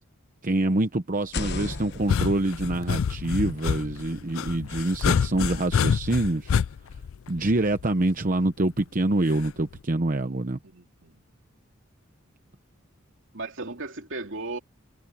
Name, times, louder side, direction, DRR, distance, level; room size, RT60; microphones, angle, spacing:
voice 1, 0.4-6.5 7.3-10.6, right 2 dB, 40° right, 0.9 m, -26 dB
sound 1, 1.2-5.0, left 3 dB, 55° left, 1.1 m, -38 dB
sound 2, 1.9-8.0 9.4-9.8, left 6 dB, 80° left, 0.4 m, -27 dB
voice 2, 10.6-11.3 13.3-14.6, right 2 dB, 65° right, 2.8 m, -36 dB
head